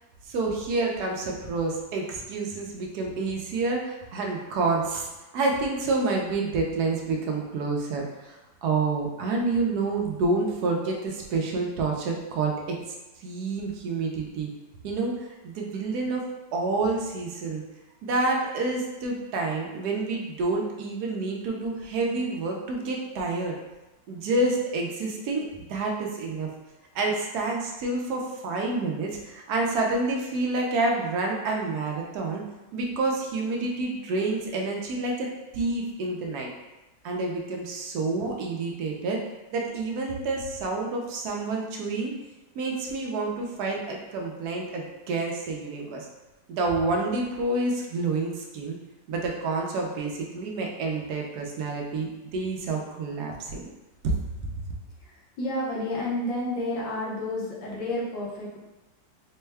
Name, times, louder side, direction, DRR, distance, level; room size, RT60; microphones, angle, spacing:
voice 1, 0.3-5.1 5.3-12.8 13.2-14.5 14.8-16.2 16.5-17.6 18.0-23.5 24.1-26.5 26.9-32.4 32.7-35.3 35.5-36.5 37.0-39.2 39.5-42.1 42.5-46.1 46.5-48.8 49.1-53.7 54.0-54.2, right 3 dB, 70° right, 0 dB, 1.0 m, -28 dB
voice 2, 55.0-58.6, left 1 dB, 85° left, -5 dB, 1.7 m, -30 dB
4.3 x 2.2 x 3.3 m, 1.0 s
omnidirectional pair, 2.0 m